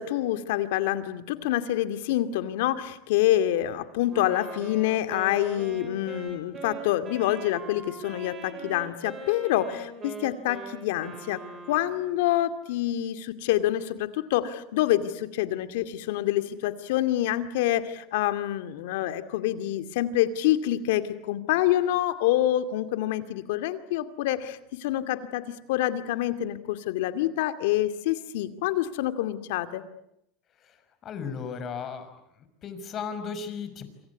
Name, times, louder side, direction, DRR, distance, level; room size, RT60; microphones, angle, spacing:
voice 1, 0.0-11.4 11.7-29.8, left 13 dB, 80° left, 10 dB, 2.3 m, -27 dB
Wind instrument woodwind instrument, 4.1-12.3, right 3 dB, 30° right, 7.5 m, -41 dB
voice 2, 31.0-32.1 32.6-33.8, left 6 dB, 35° left, 10 dB, 5.7 m, -35 dB
27.5 x 26.0 x 8.4 m, 0.78 s
supercardioid pair, 125°, 0 cm